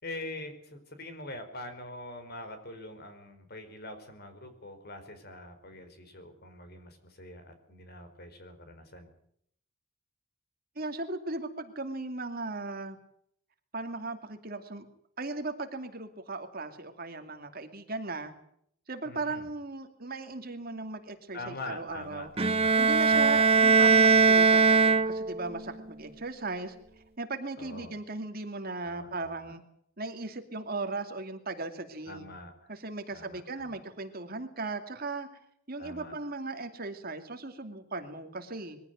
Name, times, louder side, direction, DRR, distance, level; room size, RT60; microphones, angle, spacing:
voice 1, 0.0-9.1 19.0-19.5 21.3-22.8 23.1-23.7 27.6-27.9 28.8-29.5 32.1-32.7 33.1-33.8 35.8-36.1, left 2 dB, 50° left, 8 dB, 4.6 m, -44 dB
voice 2, 10.8-13.0 13.7-14.9 15.2-18.3 18.9-22.3 22.8-26.8 27.2-29.6 30.0-32.3 32.7-35.3 35.7-38.8, right 3 dB, 45° right, 6 dB, 2.6 m, -37 dB
Bowed string instrument, 22.4-25.5, right 4 dB, 30° right, 0.9 m, -21 dB
22.5 x 16.0 x 9.4 m, 0.69 s
head